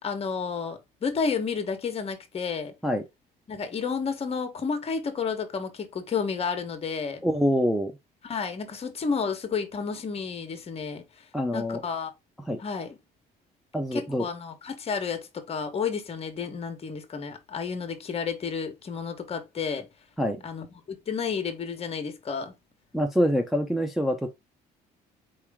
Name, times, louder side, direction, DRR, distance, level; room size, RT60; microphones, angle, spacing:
voice 1, 0.0-2.7 3.5-7.2 8.2-11.0 11.5-12.1 12.6-13.0 13.9-19.9 20.4-22.5, left 5 dB, 35° left, 1.2 m, -31 dB
voice 2, 7.2-7.9 11.3-11.8 12.5-12.6 13.7-14.3 20.2-20.4 22.9-24.3, equal, ahead, 0.6 m, -25 dB
4.7 x 3.0 x 3.6 m
cardioid pair, 110°, 17 cm